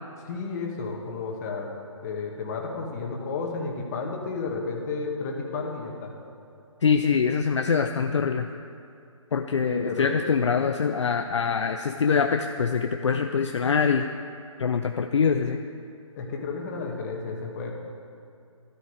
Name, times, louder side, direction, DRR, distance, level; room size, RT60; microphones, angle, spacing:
voice 1, 0.2-1.7 2.0-6.1 9.6-10.1 16.1-17.7, left 4 dB, 30° left, 0 dB, 2.0 m, -32 dB
voice 2, 6.8-8.5 9.3-14.1 14.6-15.6, left 6 dB, 60° left, 5 dB, 0.6 m, -24 dB
13.5 x 13.0 x 5.0 m, 2.5 s
figure-of-eight pair, 145°, 17 cm